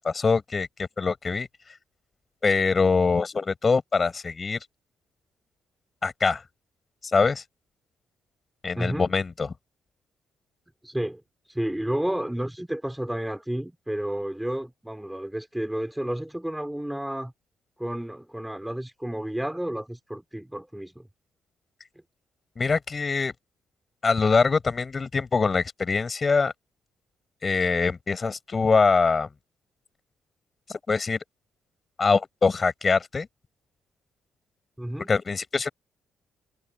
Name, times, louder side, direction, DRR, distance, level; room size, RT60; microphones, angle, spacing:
voice 1, 0.0-1.5 2.4-4.6 6.0-6.4 7.1-7.4 8.6-9.5 22.6-23.3 24.0-26.5 27.4-29.3 30.7-31.2 32.0-33.3 35.1-35.7, left 4 dB, 35° left, 6.2 m, -23 dB
voice 2, 8.8-9.1 10.8-11.2 11.5-17.3 17.8-21.1 34.8-35.1, right 1 dB, 5° right, 3.9 m, -31 dB
cardioid pair, 90°, 0 cm